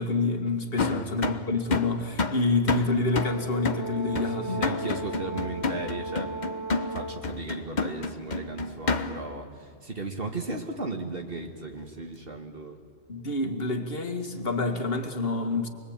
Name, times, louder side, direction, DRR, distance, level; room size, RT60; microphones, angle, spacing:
voice 1, 0.0-4.7 13.1-15.7, left 3 dB, 60° left, 6 dB, 2.2 m, -27 dB
sound 1, 0.8-9.4, left 4 dB, 45° left, 1.1 m, -31 dB
voice 2, 0.8-1.3 4.1-6.3 6.9-12.8, right 3 dB, 55° right, 3 dB, 2.1 m, -36 dB
Brass instrument, 3.1-7.3, right 2 dB, 15° left, 1.3 m, -36 dB
28.0 x 21.5 x 8.9 m, 2.1 s
omnidirectional pair, 1.1 m